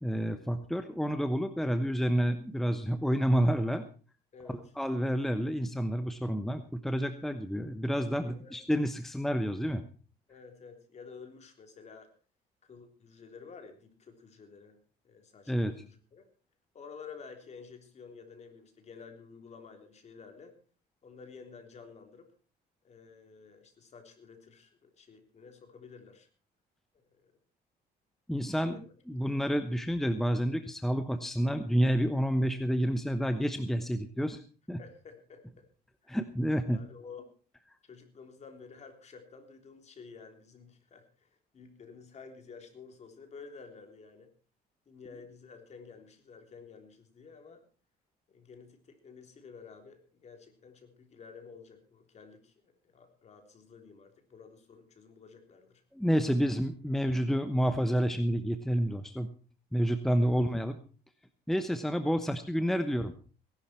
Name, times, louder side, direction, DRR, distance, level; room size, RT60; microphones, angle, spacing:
voice 1, 0.0-3.8 4.8-9.8 15.5-15.7 28.3-28.8 29.1-34.4 34.7-34.8 36.1-36.8 55.9-59.3 59.7-60.8 61.5-63.1, equal, ahead, 9 dB, 1.0 m, -29 dB
voice 2, 8.2-8.6 10.3-12.1 12.6-14.8 15.0-15.5 15.8-16.2 16.7-20.6 21.0-22.3 22.8-26.3 27.1-27.3 28.3-28.8 29.3-29.4 34.8-35.6 36.0-36.2 36.7-37.3 37.8-44.3 44.9-47.6 48.3-55.8 56.4-56.5 60.2-60.4 61.7-61.8, left 5 dB, 40° left, 6 dB, 3.5 m, -51 dB
18.5 x 11.5 x 4.4 m, 0.38 s
cardioid pair, 110°, 17 cm